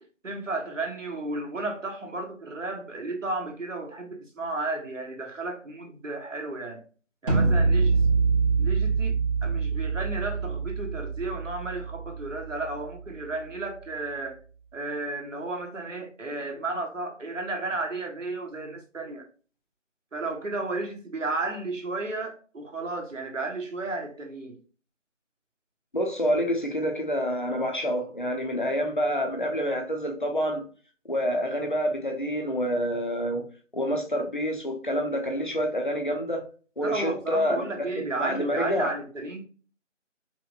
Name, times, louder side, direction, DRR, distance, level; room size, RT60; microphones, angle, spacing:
voice 1, 0.2-6.8 7.2-8.0 8.6-14.4 14.7-19.3 20.1-24.6 36.8-39.4, right 2 dB, 80° right, 1.3 m, -33 dB
sound 1, 7.3-13.2, right 4 dB, 45° right, 1.7 m, -25 dB
voice 2, 25.9-30.6 31.1-33.4 33.7-36.5 36.8-38.9, equal, 40° left, 0.8 m, -27 dB
5.7 x 2.4 x 2.5 m
figure-of-eight pair, 175°, 38 cm